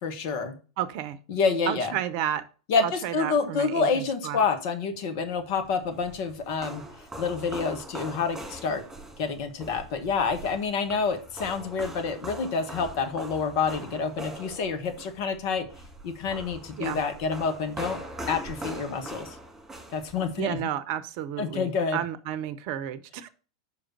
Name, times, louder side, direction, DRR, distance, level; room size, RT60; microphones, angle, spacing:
voice 1, 0.0-0.5 1.3-1.9 2.7-6.8 7.2-8.8 9.2-15.7 16.0-18.0 18.3-19.4 19.9-20.6 21.4-22.0, left 5 dB, 50° left, 7 dB, 1.3 m, -28 dB
voice 2, 0.8-1.2 1.7-2.5 2.8-4.4 16.8-17.0 20.4-23.3, right 10 dB, 50° right, 15 dB, 0.7 m, -32 dB
sound 1, 5.6-20.6, right 1 dB, 10° right, 2.3 m, -42 dB
6.0 x 5.0 x 6.0 m, 0.38 s
figure-of-eight pair, 90°, 2 cm